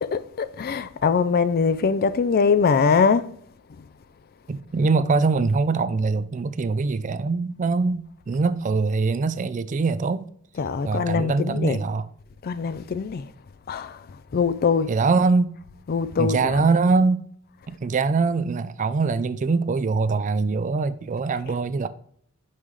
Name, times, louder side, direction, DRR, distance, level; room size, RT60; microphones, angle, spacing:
voice 1, 0.0-3.3 3.7-3.9 10.6-11.8 12.4-13.3 13.7-14.9 15.9-16.7 21.5-21.6, left 5 dB, 45° left, 0.4 m, -23 dB
voice 2, 4.5-10.3 10.8-12.0 14.9-15.5 16.2-17.2 17.7-21.9, right 4 dB, 35° right, 0.3 m, -23 dB
6.4 x 5.5 x 3.1 m
head